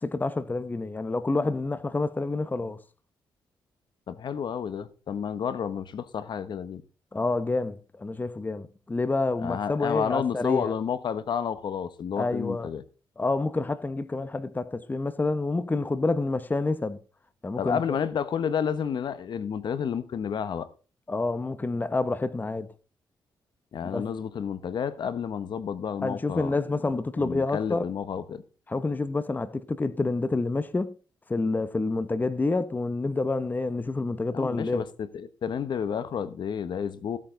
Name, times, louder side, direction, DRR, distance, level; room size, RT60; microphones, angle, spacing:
voice 1, 0.0-2.8 7.1-10.7 12.2-12.7 13.2-17.0 17.4-18.0 21.1-22.7 23.8-24.1 26.0-27.8 28.7-30.9 31.3-34.8, left 3 dB, 20° left, 1.0 m, -28 dB
voice 2, 4.1-6.8 9.4-12.8 17.6-20.7 23.7-26.5 27.2-28.4 34.3-37.2, left 7 dB, 65° left, 1.2 m, -30 dB
15.5 x 8.8 x 3.9 m
cardioid pair, 90°, 8 cm